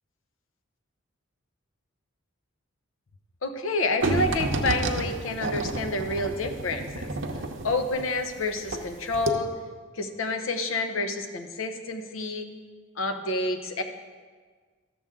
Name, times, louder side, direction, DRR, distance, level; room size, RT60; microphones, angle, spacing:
voice 1, 3.4-9.6 9.9-12.5 13.0-13.8, left 2 dB, 70° left, 7 dB, 0.8 m, -29 dB
sound 1, 4.0-8.9 9.1-9.3, right 2 dB, 60° right, 0.7 m, -30 dB
13.0 x 7.0 x 3.7 m, 1.5 s
head